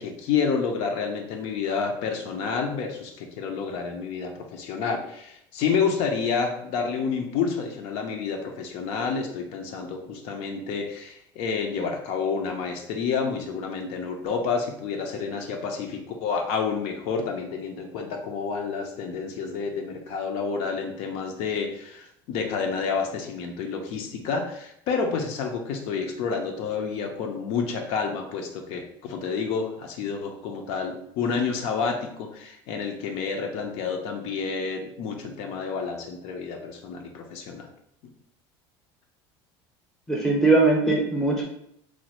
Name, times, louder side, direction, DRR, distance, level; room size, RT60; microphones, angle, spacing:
voice 1, 0.0-37.7, left 5 dB, 65° left, 3 dB, 0.5 m, -29 dB
voice 2, 40.1-41.4, right 3 dB, 5° left, 0 dB, 0.6 m, -20 dB
3.0 x 2.1 x 2.9 m, 0.72 s
supercardioid pair, 125°, 12 cm